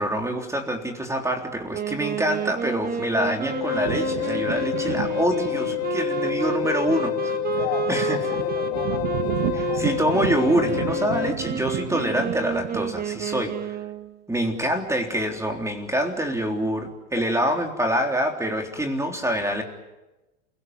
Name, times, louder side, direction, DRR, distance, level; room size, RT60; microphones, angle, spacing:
voice 1, 0.0-7.3 7.9-8.2 9.5-13.5 14.3-19.6, equal, 10° right, 3 dB, 3.7 m, -26 dB
Wind instrument woodwind instrument, 1.7-14.2, right 7 dB, 25° right, 1.4 m, -31 dB
sound 1, 2.8-13.2, right 14 dB, 60° right, 1.4 m, -33 dB
Wind instrument woodwind instrument 2, 3.5-11.4, left 15 dB, 40° left, 1.4 m, -28 dB
voice 2, 7.6-10.1 17.2-17.4, left 9 dB, 65° left, 7 dB, 5.4 m, -35 dB
28.0 x 18.0 x 9.7 m, 1.0 s
hypercardioid pair, 105°, 36 cm